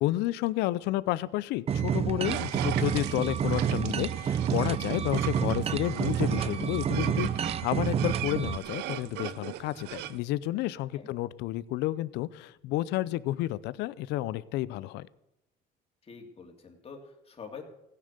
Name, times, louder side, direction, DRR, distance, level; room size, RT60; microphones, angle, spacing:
voice 1, 0.0-15.1, left 16 dB, 90° left, 19 dB, 0.6 m, -31 dB
sound 1, 1.7-8.6, right 8 dB, 35° right, 0.5 m, -29 dB
sound 2, 2.2-10.2, right 15 dB, 90° right, 0.7 m, -39 dB
voice 2, 16.0-17.6, left 5 dB, 35° left, 3 dB, 3.2 m, -46 dB
16.0 x 10.0 x 6.8 m, 0.86 s
cardioid pair, 110°, 17 cm